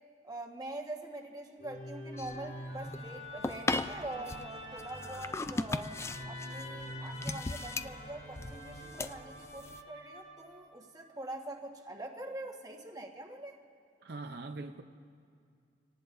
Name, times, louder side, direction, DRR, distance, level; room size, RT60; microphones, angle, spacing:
voice 1, 0.2-6.0 6.3-13.5, right 1 dB, 20° right, 1 dB, 1.4 m, -44 dB
Musical instrument, 1.6-10.8, equal, 80° left, 3.3 m, -45 dB
sound 1, 2.2-9.8, left 3 dB, 15° left, 0.3 m, -38 dB
voice 2, 14.0-14.8, right 3 dB, 60° right, 5 dB, 0.6 m, -42 dB
26.5 x 18.5 x 2.6 m, 2.3 s
head